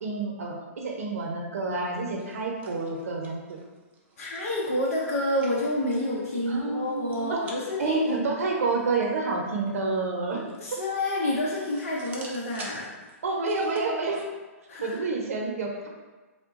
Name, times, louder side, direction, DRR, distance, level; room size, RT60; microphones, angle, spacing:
voice 1, 0.0-3.6 6.5-7.4 7.8-10.8 13.2-14.2 14.8-15.9, right 3 dB, 80° right, 1 dB, 0.6 m, -29 dB
sound 1, 2.1-14.2, right 2 dB, 20° right, 0.6 m, -49 dB
voice 2, 4.2-8.0 10.6-12.9 14.7-15.0, left 1 dB, 65° left, -6 dB, 0.7 m, -28 dB
3.6 x 2.1 x 3.6 m, 1.2 s
hypercardioid pair, 135°, 8 cm